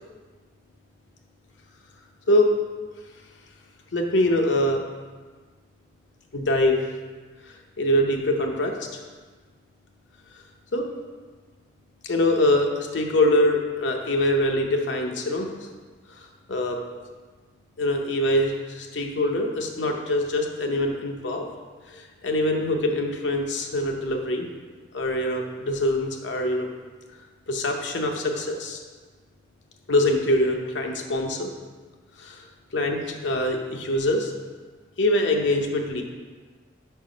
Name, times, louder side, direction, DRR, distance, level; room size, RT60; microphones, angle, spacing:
voice 1, 3.9-4.8 6.3-6.8 7.5-9.0 10.7-10.9 12.0-15.5 16.5-16.8 17.8-21.4 21.9-24.5 24.9-26.7 27.5-28.8 29.9-31.5 32.2-32.5 32.7-34.3 35.0-36.0, left 1 dB, 85° left, 2 dB, 0.7 m, -24 dB
4.9 x 4.6 x 5.1 m, 1.4 s
head